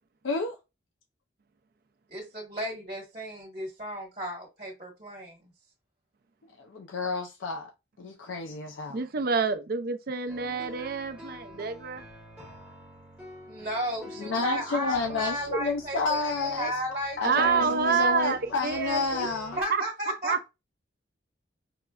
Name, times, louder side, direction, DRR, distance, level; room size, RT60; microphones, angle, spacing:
voice 1, 0.2-0.6 6.6-7.7 8.0-9.0 14.2-16.7 17.2-19.6, left 4 dB, 80° left, 0.5 m, -30 dB
voice 2, 2.1-5.5 13.5-17.7 19.2-19.3 19.6-20.5, equal, 35° right, 1.2 m, -34 dB
voice 3, 8.9-12.0 17.2-19.3 20.2-20.5, right 5 dB, 50° right, 0.4 m, -28 dB
sound 1, 10.3-19.6, equal, 5° right, 0.9 m, -47 dB
5.2 x 2.1 x 2.3 m
head